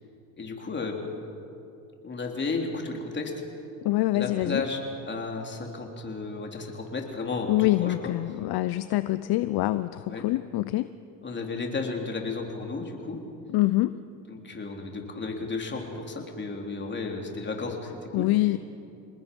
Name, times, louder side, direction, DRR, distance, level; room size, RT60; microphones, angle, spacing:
voice 1, 0.4-1.0 2.0-3.3 4.1-4.8 5.1-8.1 10.1-10.3 11.2-13.2 14.3-18.3, left 3 dB, 25° left, 1 dB, 3.4 m, -33 dB
voice 2, 3.8-4.6 7.5-10.9 13.5-13.9 18.1-18.6, left 17 dB, 55° left, 13 dB, 0.7 m, -25 dB
27.5 x 20.0 x 5.4 m, 2.8 s
supercardioid pair, 110°, 45 cm